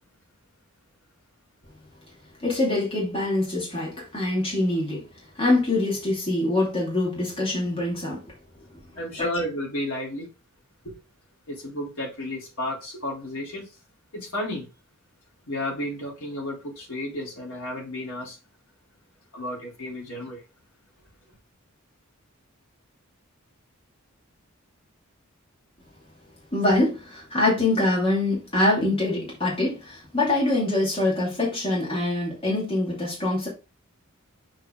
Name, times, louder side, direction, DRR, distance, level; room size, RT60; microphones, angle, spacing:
voice 1, 2.4-5.0 5.3-8.2 9.2-9.3 26.5-33.5, left 2 dB, 25° left, 2.5 m, -24 dB
voice 2, 8.9-10.3 10.8-11.0 11.5-13.7 14.1-14.7 15.5-18.4 19.3-20.4, left 1 dB, 75° left, 3.6 m, -32 dB
6.3 x 4.5 x 3.8 m
head